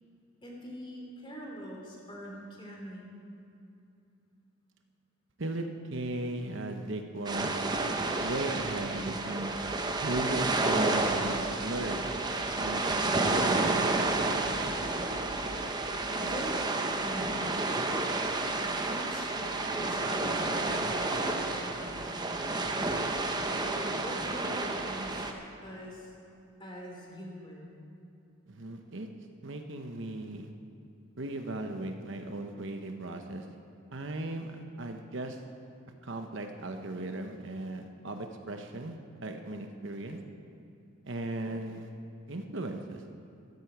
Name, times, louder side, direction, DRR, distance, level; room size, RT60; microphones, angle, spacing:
voice 1, 0.4-3.1 4.3-4.5 16.0-16.6 17.0-17.5 17.9-18.1 18.6-22.8 23.2-25.3 25.6-26.1 26.6-27.8, equal, 25° left, -2 dB, 3.1 m, -43 dB
voice 2, 5.9-7.6 8.2-9.5 10.0-12.0 12.6-14.6 28.5-29.1 29.4-30.5 31.2-33.5 33.9-35.4 36.0-39.0 39.2-40.2 41.0-41.9 42.3-43.0, right 2 dB, 60° right, 5 dB, 1.0 m, -37 dB
sound 1, 7.3-25.3, right 2 dB, 20° right, 0.9 m, -30 dB
13.5 x 11.0 x 8.0 m, 2.6 s
head